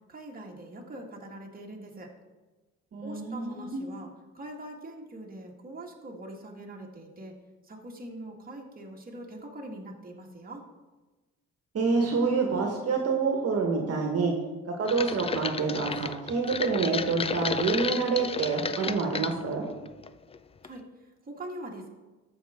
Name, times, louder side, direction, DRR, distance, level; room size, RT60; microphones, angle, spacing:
voice 1, 0.1-2.1 3.0-7.3 7.6-10.6 20.6-21.9, right 1 dB, 30° right, 0 dB, 1.8 m, -43 dB
voice 2, 2.9-3.8 11.7-14.3 14.8-19.7, right 4 dB, 55° right, 1 dB, 1.5 m, -27 dB
sound 1, 14.9-19.4 19.9-20.4 20.6-20.7, left 5 dB, 20° left, 0.3 m, -32 dB
13.5 x 5.6 x 3.6 m, 1.2 s
cardioid pair, 90°, 30 cm